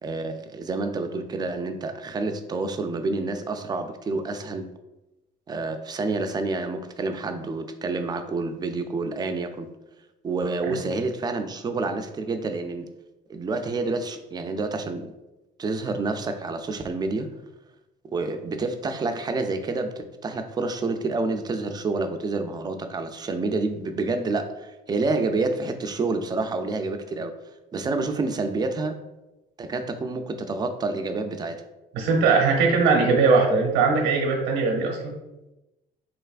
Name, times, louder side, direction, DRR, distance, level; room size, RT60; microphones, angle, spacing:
voice 1, 0.0-4.7 5.5-9.7 10.2-12.9 13.3-15.1 15.6-17.3 18.1-27.3 27.7-29.0 29.6-31.6, right 3 dB, 25° right, 7 dB, 0.3 m, -28 dB
voice 2, 31.9-35.1, right 4 dB, 90° right, 1 dB, 0.8 m, -20 dB
3.9 x 3.3 x 2.4 m, 0.99 s
cardioid pair, 110°, 17 cm